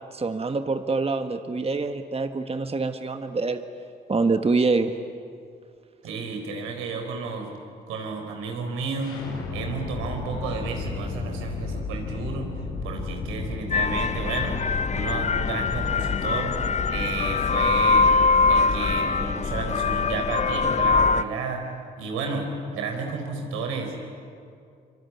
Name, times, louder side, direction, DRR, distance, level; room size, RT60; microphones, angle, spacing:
voice 1, 0.1-3.6 4.1-4.9, right 3 dB, 30° right, 7 dB, 1.5 m, -25 dB
voice 2, 6.0-7.5 7.9-9.1 9.5-12.5 12.8-14.6 14.9-16.5 16.9-18.1 18.5-21.6 22.0-23.9, right 4 dB, 85° right, 3 dB, 4.3 m, -32 dB
sound 1, 9.0-20.9, left 4 dB, 80° left, 5.9 m, -35 dB
sound 2, 13.7-21.2, left 4 dB, 35° left, 0.8 m, -23 dB
25.0 x 24.0 x 9.5 m, 2.4 s
hypercardioid pair, 50°, 21 cm